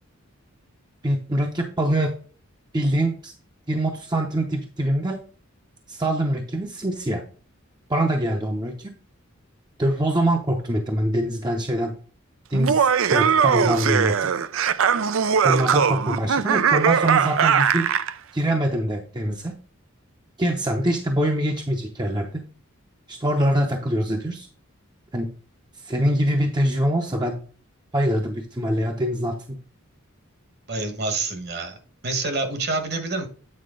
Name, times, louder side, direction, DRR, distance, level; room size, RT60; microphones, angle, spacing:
voice 1, 1.0-2.1 2.7-3.3 3.7-5.2 5.9-7.2 7.9-8.9 9.8-11.9 12.5-14.3 15.4-17.9 18.3-19.5 20.4-22.4 23.1-24.5 25.1-25.3 25.8-27.4 27.9-29.6, right 1 dB, 20° right, 2 dB, 0.7 m, -24 dB
Laughter, 12.5-18.1, right 7 dB, 65° right, 0.4 m, -20 dB
voice 2, 30.7-31.8 32.0-33.3, right 3 dB, 50° right, 7 dB, 1.4 m, -27 dB
8.7 x 4.4 x 3.8 m, 0.40 s
head